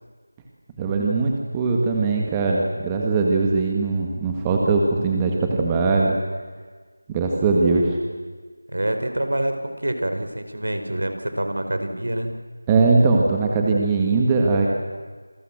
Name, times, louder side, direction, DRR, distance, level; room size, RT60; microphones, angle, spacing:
voice 1, 0.8-6.2 7.1-8.0 12.7-14.7, right 3 dB, 10° right, 0 dB, 1.9 m, -20 dB
voice 2, 8.7-12.3, right 1 dB, 75° right, 7 dB, 4.8 m, -26 dB
28.0 x 21.5 x 7.5 m, 1.5 s
figure-of-eight pair, 175°, 0 cm